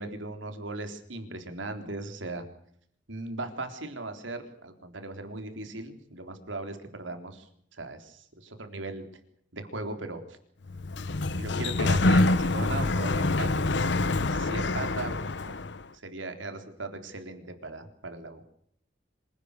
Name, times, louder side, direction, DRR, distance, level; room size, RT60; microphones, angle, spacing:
voice 1, 0.0-2.4 3.1-9.0 9.5-10.4 11.4-15.2 15.4-15.5 16.0-18.4, right 2 dB, 90° right, 7 dB, 3.7 m, -38 dB
Sliding door, 10.7-15.8, left 2 dB, 65° left, 1.0 m, -26 dB
26.5 x 18.0 x 6.8 m, 0.65 s
head